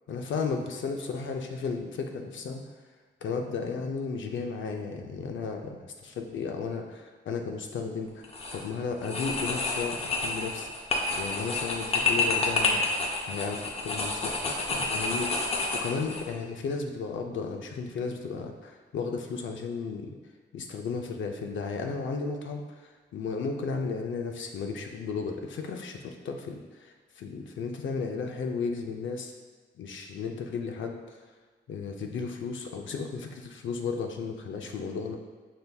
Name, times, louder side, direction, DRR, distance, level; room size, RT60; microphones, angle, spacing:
voice 1, 0.1-2.7 3.2-12.8 13.3-15.3 15.8-20.1 20.5-29.3 29.8-31.2 31.7-35.2, left 5 dB, 90° left, 3 dB, 0.5 m, -34 dB
sound 1, 8.2-8.6 9.0-16.2, left 3 dB, 30° left, 0.5 m, -29 dB
5.7 x 3.3 x 2.2 m, 1.4 s
wide cardioid pair, 175°, 19 cm